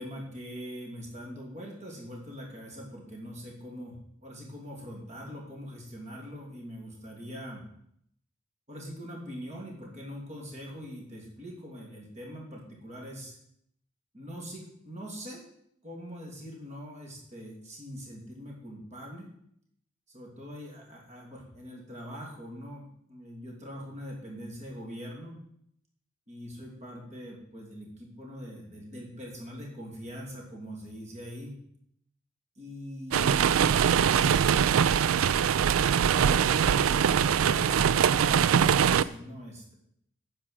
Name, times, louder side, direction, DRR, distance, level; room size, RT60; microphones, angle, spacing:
voice 1, 0.0-7.6 8.7-13.4 14.1-15.4 15.8-19.3 20.1-25.4 26.3-31.6 32.6-34.9 35.9-39.7, equal, 35° right, -1 dB, 2.8 m, -42 dB
sound 1, 33.1-39.0, right 8 dB, 75° right, 0.4 m, -23 dB
9.9 x 4.8 x 7.6 m, 0.71 s
head